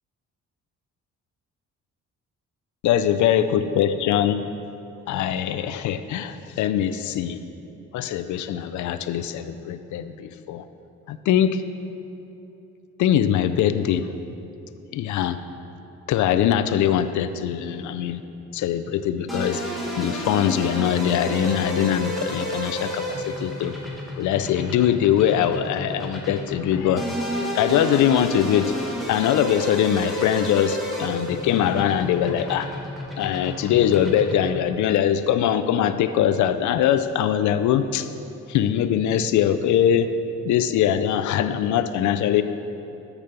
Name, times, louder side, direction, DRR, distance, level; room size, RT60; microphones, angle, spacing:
voice 1, 2.8-4.5 5.1-7.4 7.9-10.6 11.1-11.6 13.0-14.1 14.9-15.4 16.1-18.2 18.5-19.6 20.0-23.7 24.2-27.1 27.5-28.7 29.1-32.8 33.2-38.1 38.5-40.1 40.4-42.4, left 10 dB, 75° left, 11 dB, 0.5 m, -22 dB
sound 1, 19.3-34.6, equal, ahead, 1.5 m, -31 dB
6.5 x 6.1 x 6.7 m, 2.8 s
cardioid pair, 90°, 30 cm